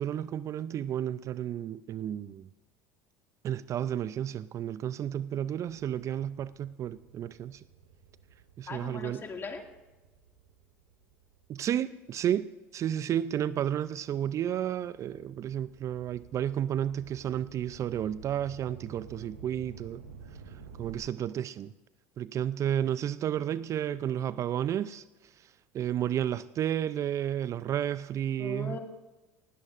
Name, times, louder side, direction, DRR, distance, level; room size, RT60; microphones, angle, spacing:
voice 1, 0.0-2.5 3.4-7.6 8.6-9.2 11.5-20.0 20.8-21.7 22.2-28.8, right 10 dB, 45° right, 0.4 m, -32 dB
sound 1, 6.1-12.4 13.0-21.0, right 6 dB, 85° right, 1.5 m, -52 dB
voice 2, 8.7-9.6 28.4-28.8, left 4 dB, 30° left, 2.2 m, -39 dB
18.5 x 16.5 x 2.5 m
hypercardioid pair, 75°, 8 cm